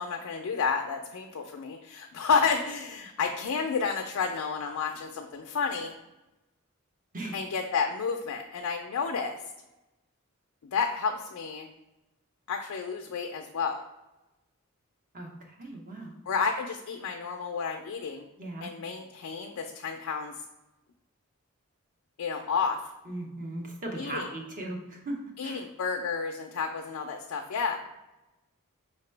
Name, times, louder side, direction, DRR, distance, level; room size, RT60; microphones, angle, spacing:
voice 1, 0.0-5.9 7.3-9.4 10.6-11.7 12.5-13.8 16.3-18.2 18.6-20.3 22.2-22.8 24.0-24.3 25.4-27.8, left 5 dB, 75° left, 3 dB, 0.4 m, -31 dB
voice 2, 15.1-16.1 18.4-18.7 23.1-25.6, right 1 dB, 40° right, 0 dB, 0.8 m, -38 dB
5.3 x 2.9 x 3.2 m, 0.99 s
head